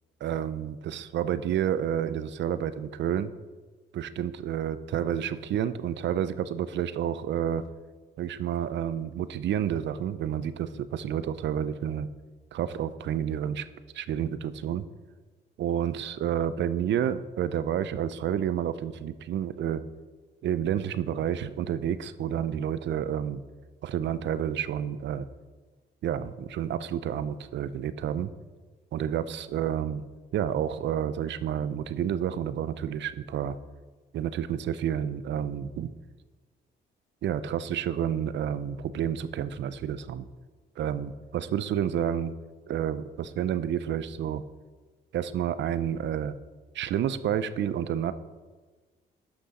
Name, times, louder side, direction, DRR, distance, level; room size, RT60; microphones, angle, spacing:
voice 1, 0.2-3.3 3.9-7.6 8.2-12.1 12.5-13.7 13.9-14.8 15.6-19.8 20.4-23.4 23.8-25.3 26.0-28.3 28.9-30.0 30.3-33.6 34.1-35.9 37.2-40.3 40.8-42.3 42.7-44.4 45.1-46.3 46.7-48.1, right 9 dB, 65° right, 14 dB, 0.5 m, -30 dB
11.5 x 6.2 x 4.1 m, 1.3 s
cardioid pair, 90°, 20 cm